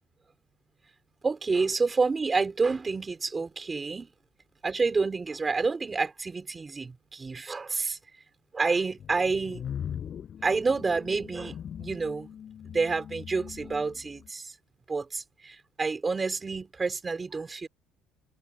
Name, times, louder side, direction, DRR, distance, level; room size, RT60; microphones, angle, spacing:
voice 1, 1.2-4.1 4.6-8.0 8.5-9.6 10.4-12.3 12.7-14.5 14.9-17.7, right 4 dB, 15° right, 4.5 m, -29 dB
sound 1, 9.0-14.3, left 9 dB, 35° left, 6.6 m, -40 dB
cardioid pair, 170°, 0 cm